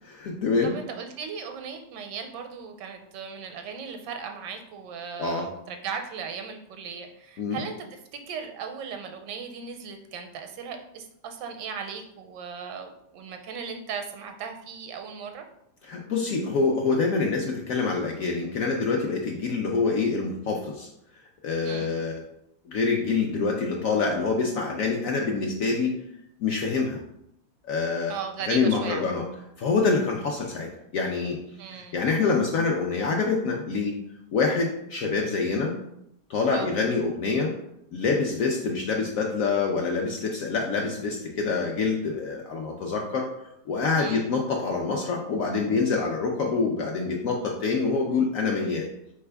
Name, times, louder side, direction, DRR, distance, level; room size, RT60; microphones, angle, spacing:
voice 1, 0.0-0.7 5.2-5.5 7.4-7.6 15.8-20.9 21.4-22.2 22.7-25.9 26.4-27.0 27.7-28.2 28.5-29.3 29.6-31.4 31.7-34.0 34.3-35.8 36.3-37.5 37.9-43.3 43.7-48.9, left 4 dB, 70° left, 0 dB, 0.8 m, -26 dB
voice 2, 0.6-7.9 8.1-15.4 21.6-21.9 28.1-29.1 31.6-31.9 36.5-36.7 44.0-44.3, right 6 dB, 80° right, 5 dB, 1.2 m, -37 dB
4.3 x 3.4 x 3.3 m, 0.77 s
omnidirectional pair, 1.9 m